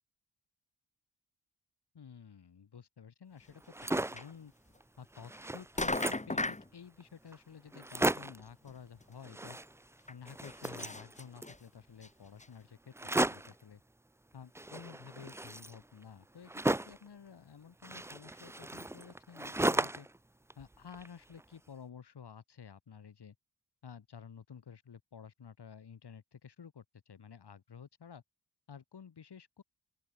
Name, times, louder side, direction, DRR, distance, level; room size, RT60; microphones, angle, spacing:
voice 1, 1.9-4.5 5.0-9.6 10.1-13.8 14.3-20.1 20.6-23.4 23.8-28.2 28.7-29.6, left 7 dB, 70° left, 6.0 m, -52 dB
sound 1, 3.6-4.3 4.8-4.9 5.1-6.4 7.0-7.1 7.3-7.4 7.7-8.5 9.2-10.0 10.3-11.6 12.9-13.6 14.6-17.1 17.8-20.2 20.5-21.4, right 2 dB, 5° right, 0.5 m, -35 dB
sound 2, 3.8-3.9 4.2-4.3 5.3-5.5 5.8-6.7 8.2-8.3 8.7-8.8 9.0-9.1 10.1-11.6 12.0-12.1 12.4-12.5, left 2 dB, 15° left, 2.3 m, -36 dB
open air
cardioid pair, 80°, 42 cm